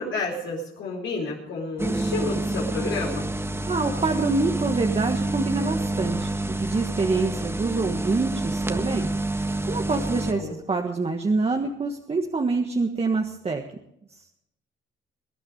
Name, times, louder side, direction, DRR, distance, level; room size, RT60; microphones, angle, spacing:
voice 1, 0.0-3.3 10.3-10.5, left 3 dB, 75° left, -4 dB, 4.7 m, -30 dB
sound 1, 1.8-10.3, right 2 dB, 10° right, 1.4 m, -28 dB
voice 2, 3.7-6.3 6.6-13.6 14.1-14.2, right 3 dB, 30° right, 3 dB, 1.6 m, -26 dB
22.0 x 10.0 x 5.4 m, 0.81 s
cardioid pair, 90°, 20 cm